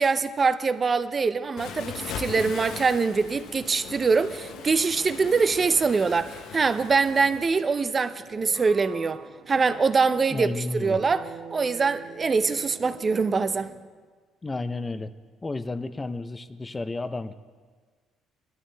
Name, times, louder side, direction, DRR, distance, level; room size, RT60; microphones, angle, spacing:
voice 1, 0.0-13.7, right 4 dB, 30° right, 0.5 m, -24 dB
Waves surf, 1.6-7.5, left 7 dB, 70° left, 0.8 m, -39 dB
sound 1, 4.3-13.9, right 6 dB, 70° right, 1.6 m, -46 dB
voice 2, 10.3-11.0 14.4-15.1 15.4-17.3, left 3 dB, 20° left, 0.6 m, -32 dB
20.0 x 12.5 x 3.4 m
cardioid pair, 120°, 0 cm